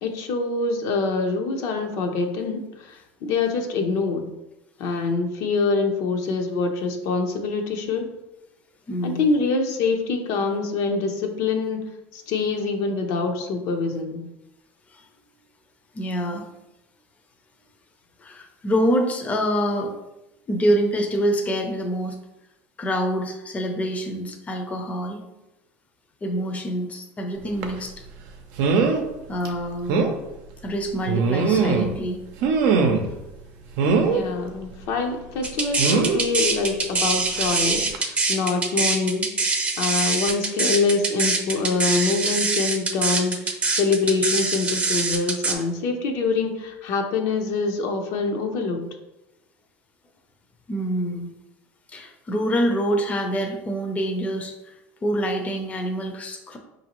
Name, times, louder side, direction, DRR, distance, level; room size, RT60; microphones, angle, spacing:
voice 1, 0.0-4.3 4.8-8.1 9.0-11.8 12.1-14.3 34.0-48.9, left 4 dB, 65° left, 3 dB, 0.6 m, -25 dB
voice 2, 8.9-9.3 14.9-15.0 15.9-16.5 18.2-19.9 20.5-22.2 22.8-25.2 26.2-27.9 29.3-30.1 30.6-32.2 50.7-51.3 51.9-54.7 55.0-56.6, equal, 25° left, 3 dB, 0.5 m, -26 dB
sound 1, 27.6-27.8 28.6-29.0 29.4-29.5 29.9-30.1 31.1-32.0 32.4-33.1 33.8-34.2 35.8-36.2 37.4-37.6 37.9-38.0, right 5 dB, 70° right, 0.6 m, -21 dB
sound 2, 35.4-45.5, right 3 dB, 20° right, 0.6 m, -23 dB
5.0 x 2.6 x 3.0 m, 0.97 s
supercardioid pair, 110°, 6 cm